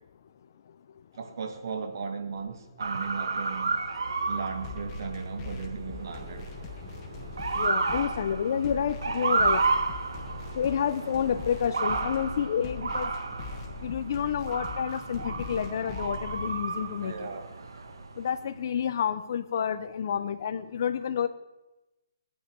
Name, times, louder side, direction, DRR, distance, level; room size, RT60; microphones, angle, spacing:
voice 1, 1.1-3.8 4.3-6.5 17.0-17.5, right 5 dB, 60° right, 1.6 m, -36 dB
Motor vehicle (road) / Siren, 2.8-18.4, right 3 dB, 80° right, 1.4 m, -32 dB
sound 1, 4.6-16.6, left 6 dB, 25° left, 1.1 m, -43 dB
sound 2, 5.9-12.0, right 1 dB, 30° right, 5.5 m, -50 dB
voice 2, 7.5-9.6 10.5-13.1 13.8-17.3 18.2-21.3, left 8 dB, 50° left, 0.8 m, -29 dB
19.5 x 8.8 x 4.6 m
hypercardioid pair, 150°, 2 cm